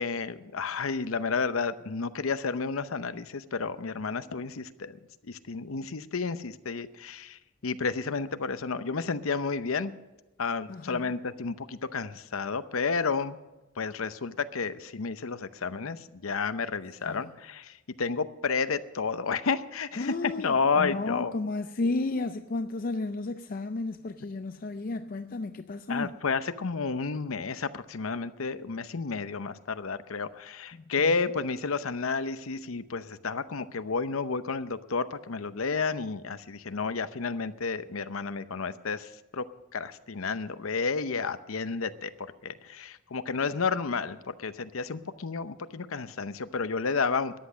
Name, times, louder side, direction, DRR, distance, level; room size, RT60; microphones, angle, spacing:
voice 1, 0.0-9.9 10.4-13.4 13.8-21.3 25.9-39.4 39.7-42.1 42.4-47.3, left 4 dB, 80° left, 0.7 m, -31 dB
voice 2, 10.7-11.1 17.0-17.2 20.0-26.1 30.7-30.8, left 3 dB, 40° left, 0.4 m, -33 dB
14.0 x 10.5 x 6.3 m
head